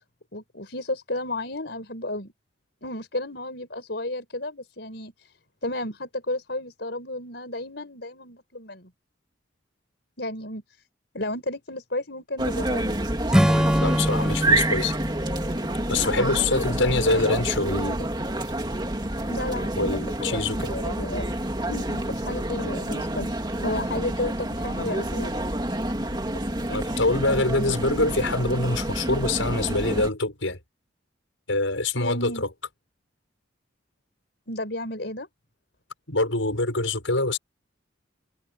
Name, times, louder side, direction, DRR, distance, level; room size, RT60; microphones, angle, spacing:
voice 1, 0.3-2.3 2.8-5.1 5.6-8.9 10.2-10.6 11.1-13.0 16.0-17.4 19.3-21.4 21.7-25.3 31.9-32.4 34.5-35.3, left 1 dB, 60° left, 5.3 m, -33 dB
sound 1, 12.4-30.1, right 1 dB, 20° right, 2.5 m, -28 dB
Acoustic guitar / Strum, 13.3-16.8, equal, 5° right, 5.0 m, -25 dB
voice 2, 13.8-15.0 15.9-18.1 19.8-20.7 26.3-30.6 31.5-32.5 36.1-37.4, left 2 dB, 80° left, 6.8 m, -25 dB
head